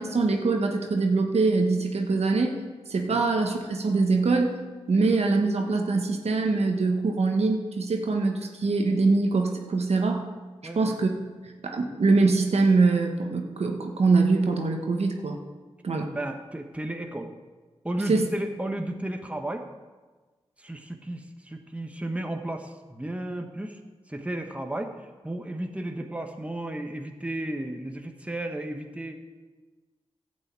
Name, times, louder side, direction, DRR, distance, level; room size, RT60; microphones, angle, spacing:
voice 1, 0.0-2.5 2.9-4.5 4.9-10.2 10.7-11.1 11.6-15.4 15.8-16.1 18.1-18.3, right 3 dB, 70° right, 3 dB, 1.4 m, -23 dB
voice 2, 10.6-11.0 16.1-17.3 17.8-19.6 20.6-23.8 24.1-24.9 25.2-29.2, right 1 dB, 10° right, 4 dB, 1.2 m, -33 dB
12.0 x 5.5 x 8.3 m, 1.3 s
cardioid pair, 45°, 11 cm